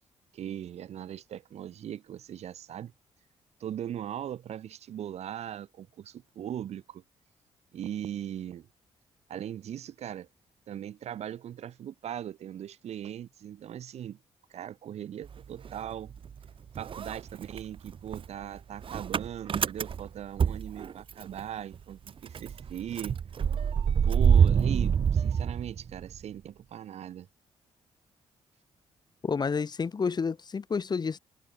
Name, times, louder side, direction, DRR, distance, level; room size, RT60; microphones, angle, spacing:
voice 1, 0.3-2.9 3.6-7.0 7.7-8.7 9.3-10.3 10.7-14.2 14.5-16.1 16.7-23.2 24.0-27.3, right 10 dB, 75° right, 2.3 m, -39 dB
Motor vehicle (road) / Engine starting, 15.2-16.5 16.8-21.4 21.7-21.8 22.1-26.2, right 7 dB, 50° right, 0.9 m, -27 dB
voice 2, 29.2-31.2, left 5 dB, 40° left, 1.1 m, -29 dB
cardioid pair, 75°, 11 cm